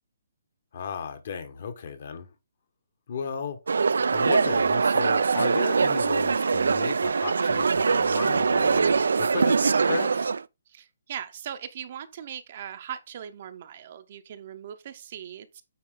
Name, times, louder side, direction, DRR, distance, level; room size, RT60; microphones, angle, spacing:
voice 1, 0.7-2.3 3.1-3.7 4.1-9.6 9.8-10.3, left 6 dB, 45° left, 1.2 m, -35 dB
sound 1, 3.7-10.4, right 5 dB, 85° right, 0.3 m, -23 dB
voice 2, 10.7-15.6, right 9 dB, 35° right, 0.7 m, -39 dB
8.6 x 4.3 x 3.8 m
hypercardioid pair, 170°, 0 cm